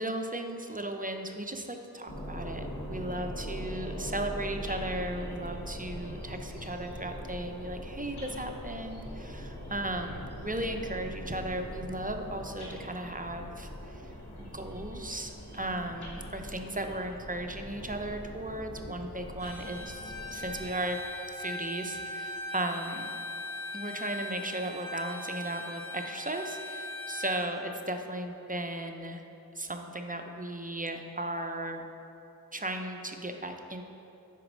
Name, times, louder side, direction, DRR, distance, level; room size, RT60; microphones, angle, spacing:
voice 1, 0.0-14.1 14.4-21.0 21.3-23.1 23.7-29.2 29.5-31.8 32.5-33.8, right 1 dB, 20° right, 4 dB, 0.5 m, -36 dB
sound 1, 2.1-20.8, equal, 90° left, 1.4 m, -41 dB
Bowed string instrument, 19.4-27.5, left 1 dB, 65° left, 1.3 m, -40 dB
6.5 x 5.2 x 5.0 m, 3.0 s
wide cardioid pair, 45°, 37 cm